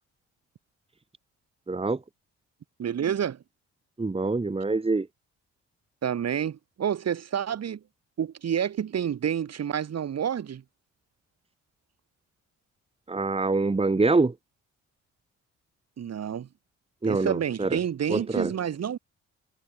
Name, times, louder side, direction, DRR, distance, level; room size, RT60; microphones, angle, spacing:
voice 1, 1.7-2.0 4.0-5.1 13.1-14.3 17.0-17.8 18.1-18.5, right 3 dB, 20° right, 2.3 m, -25 dB
voice 2, 2.8-3.4 6.0-7.8 8.2-10.6 16.0-16.5 17.0-19.0, right 8 dB, 55° right, 5.0 m, -29 dB
cardioid pair, 90°, 30 cm